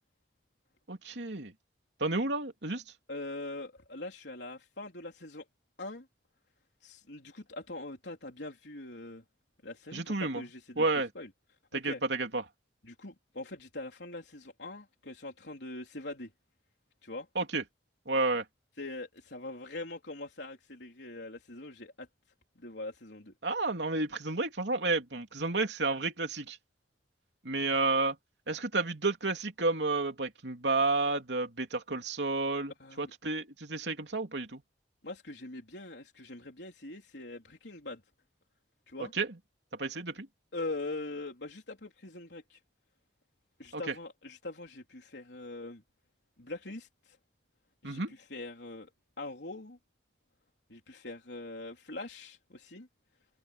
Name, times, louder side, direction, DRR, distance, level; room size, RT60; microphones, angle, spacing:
voice 1, 0.9-1.5 2.0-2.8 9.9-10.4 10.8-11.1 11.7-12.4 17.3-17.6 18.1-18.4 23.4-26.6 27.4-28.2 28.5-34.6 39.0-39.3 39.8-40.3 43.7-43.9 47.8-48.1, right 3 dB, 85° right, 3.1 m, -31 dB
voice 2, 3.1-5.5 5.8-6.1 6.8-9.2 9.6-10.8 11.2-11.3 11.7-12.0 12.8-16.3 17.0-17.3 18.8-22.1 22.6-23.3 32.8-33.1 35.0-38.0 38.9-39.1 40.5-42.6 43.6-45.8 46.4-47.2 47.8-48.9 49.2-49.8 50.7-52.9, left 2 dB, 85° left, 3.8 m, -42 dB
head